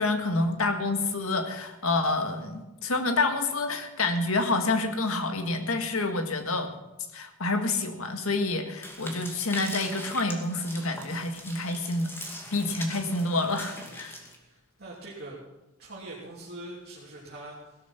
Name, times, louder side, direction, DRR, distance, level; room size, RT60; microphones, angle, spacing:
voice 1, 0.0-6.7 7.1-12.1 12.5-14.2, left 2 dB, 75° left, 6 dB, 1.8 m, -28 dB
sound 1, 8.8-14.4, left 1 dB, 10° left, 2.4 m, -41 dB
voice 2, 13.8-15.3 15.8-17.8, right 1 dB, 50° right, -6 dB, 3.2 m, -44 dB
17.5 x 12.5 x 5.9 m, 1.0 s
head